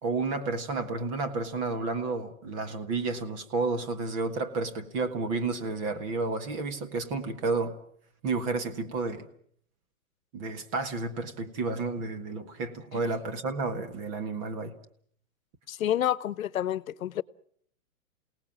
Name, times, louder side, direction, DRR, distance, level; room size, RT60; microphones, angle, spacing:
voice 1, 0.0-7.7 8.2-9.3 10.3-14.7, right 3 dB, 25° right, 1.6 m, -31 dB
voice 2, 15.7-17.2, left 11 dB, 85° left, 1.0 m, -29 dB
28.0 x 18.5 x 7.5 m
hypercardioid pair, 175°, 40 cm